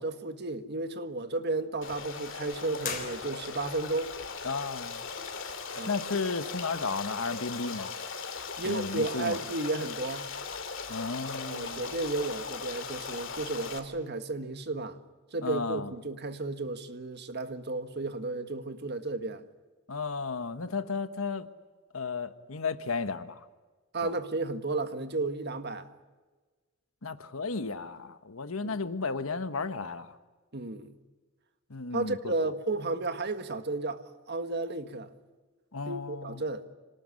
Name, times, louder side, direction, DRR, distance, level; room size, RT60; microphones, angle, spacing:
voice 1, 0.0-4.1 5.8-5.9 8.6-10.3 11.4-15.0 15.3-19.4 23.9-25.9 28.6-28.8 30.5-30.9 31.9-34.0 34.3-35.1 35.9-36.6, right 3 dB, 55° right, 1.6 m, -33 dB
Stream, 1.8-13.8, left 5 dB, 65° left, 2.7 m, -39 dB
sound 1, 2.8-3.8, left 6 dB, 40° left, 3.9 m, -38 dB
voice 2, 4.4-5.0 5.9-7.9 8.6-9.4 10.9-11.8 15.4-15.9 19.9-21.5 21.9-23.5 24.0-24.1 27.0-30.2 31.7-32.3 35.7-36.4, left 4 dB, 90° left, 1.4 m, -34 dB
26.0 x 19.0 x 9.9 m
head